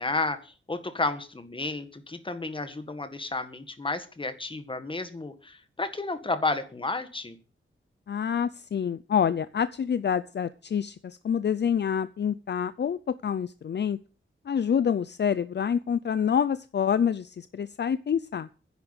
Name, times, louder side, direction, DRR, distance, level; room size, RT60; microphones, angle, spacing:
voice 1, 0.0-7.4, left 3 dB, 25° left, 10 dB, 1.7 m, -32 dB
voice 2, 8.1-14.0 14.5-18.5, left 7 dB, 55° left, 14 dB, 0.6 m, -27 dB
10.5 x 8.1 x 9.0 m, 0.36 s
wide cardioid pair, 140°, 21 cm